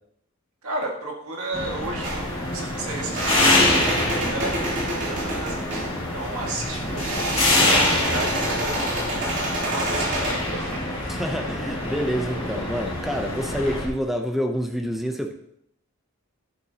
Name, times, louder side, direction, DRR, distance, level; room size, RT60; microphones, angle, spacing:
voice 1, 0.6-10.9, right 2 dB, 85° right, -1 dB, 2.0 m, -34 dB
Ambience Hockeyrink Empty, 1.5-13.9, left 2 dB, 30° left, 2.6 m, -26 dB
sound 1, 2.0-10.5, right 1 dB, 55° right, 3.3 m, -28 dB
voice 2, 11.0-15.3, equal, ahead, 3 dB, 0.6 m, -27 dB
11.5 x 7.8 x 2.9 m, 0.74 s
head